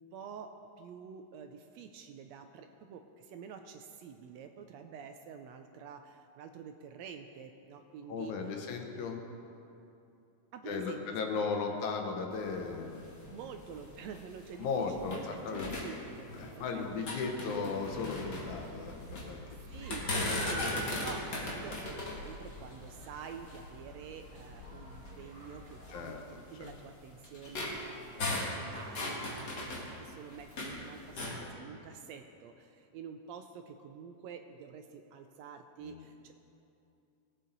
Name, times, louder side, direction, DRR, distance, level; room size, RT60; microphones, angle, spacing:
voice 1, 0.0-8.3 10.5-11.6 13.3-17.2 19.7-26.2 26.5-36.3, right 6 dB, 80° right, 6 dB, 1.7 m, -48 dB
voice 2, 8.1-9.2 10.7-13.1 14.6-15.7 16.3-19.4 25.9-26.8 35.8-36.1, left 5 dB, 80° left, 2 dB, 2.4 m, -36 dB
sound 1, 12.3-15.3 15.5-16.6 16.9-19.3 19.7-23.7 24.4-24.5 24.9-25.1 25.8-30.8 31.1-31.4, left 2 dB, 40° left, 2.0 m, -38 dB
sound 2, 17.9-26.0, left 1 dB, 35° right, 2.1 m, -46 dB
19.0 x 8.3 x 3.9 m, 2.7 s
omnidirectional pair, 3.4 m